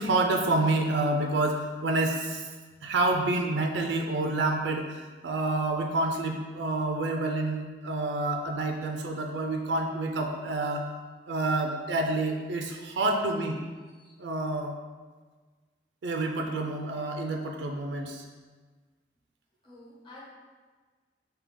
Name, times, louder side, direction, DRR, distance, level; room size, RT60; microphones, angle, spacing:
voice 1, 0.0-2.5 2.8-10.9 11.3-13.6 14.2-14.7 16.0-18.2, right 2 dB, 80° right, 2 dB, 0.4 m, -28 dB
voice 2, 19.6-20.2, left 1 dB, 25° left, -6 dB, 1.1 m, -50 dB
5.0 x 2.8 x 3.7 m, 1.4 s
head